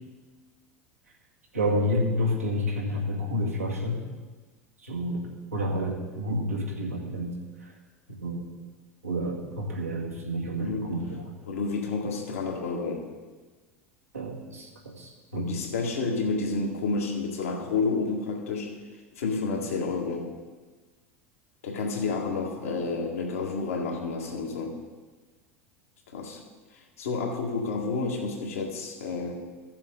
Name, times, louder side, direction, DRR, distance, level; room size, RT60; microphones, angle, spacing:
voice 1, 1.5-4.0 4.8-5.3 5.5-7.3 7.6-7.7 8.2-8.4 9.0-11.3 14.1-15.6, equal, 90° right, -4 dB, 2.2 m, -29 dB
voice 2, 11.5-13.1 15.4-18.7 19.2-20.3 21.6-24.8 26.1-26.4 26.7-29.4, left 4 dB, 75° left, 0 dB, 1.9 m, -30 dB
15.5 x 7.3 x 3.9 m, 1.3 s
figure-of-eight pair, 80°, 8 cm